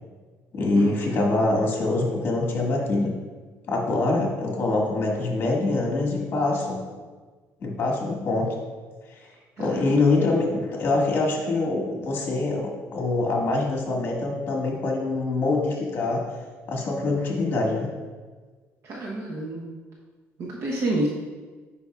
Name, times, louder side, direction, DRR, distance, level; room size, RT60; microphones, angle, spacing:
voice 1, 0.5-3.1 3.7-6.8 7.6-8.5 9.1-9.3 9.6-16.2 16.7-17.9, left 2 dB, 40° left, -1 dB, 1.7 m, -24 dB
voice 2, 9.6-9.9 18.8-19.7 20.4-21.1, right 1 dB, 60° right, -4 dB, 0.9 m, -29 dB
8.1 x 5.3 x 2.4 m, 1.4 s
cardioid pair, 125°, 6 cm